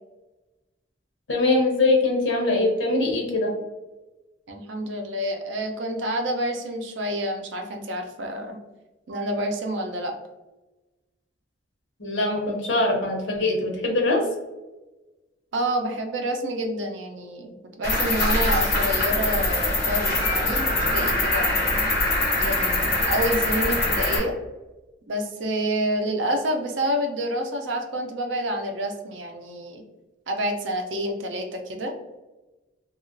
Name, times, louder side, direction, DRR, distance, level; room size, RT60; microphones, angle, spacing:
voice 1, 1.3-3.5 12.0-14.2, left 2 dB, 85° left, 0 dB, 0.8 m, -22 dB
voice 2, 4.5-8.6 9.1-10.2 15.5-21.7 22.4-24.3 25.1-29.8 30.3-31.9, right 1 dB, 85° right, 3 dB, 0.5 m, -28 dB
Cricket, 17.8-24.2, left 2 dB, 50° left, 1.0 m, -23 dB
2.8 x 2.4 x 2.5 m, 1.1 s
head